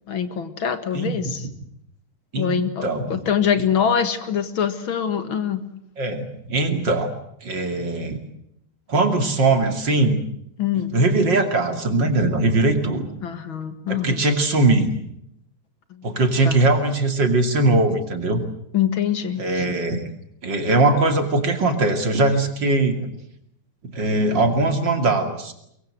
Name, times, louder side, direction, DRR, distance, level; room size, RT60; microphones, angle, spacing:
voice 1, 0.1-1.5 2.4-5.6 10.6-10.9 13.2-14.2 15.9-16.6 18.7-19.6, left 8 dB, 70° left, 10 dB, 2.5 m, -24 dB
voice 2, 2.3-3.2 6.0-7.1 7.4-8.2 8.9-10.2 10.9-13.1 13.9-14.9 16.0-18.4 19.4-20.0 20.4-23.1 23.9-25.5, right 2 dB, 55° right, 6 dB, 3.3 m, -20 dB
23.5 x 23.0 x 7.8 m, 0.75 s
omnidirectional pair, 2.3 m